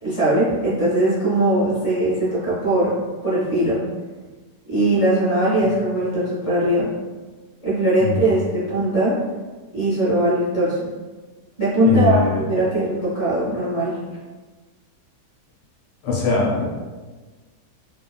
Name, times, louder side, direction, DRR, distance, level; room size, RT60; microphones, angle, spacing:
voice 1, 0.0-2.9 3.2-3.8 4.7-6.9 7.6-9.2 9.7-10.9 11.6-14.0, right 1 dB, 20° left, -8 dB, 0.9 m, -20 dB
voice 2, 11.8-12.4 16.0-16.6, left 4 dB, 85° left, -3 dB, 1.3 m, -21 dB
3.1 x 2.2 x 2.2 m, 1.3 s
omnidirectional pair, 1.9 m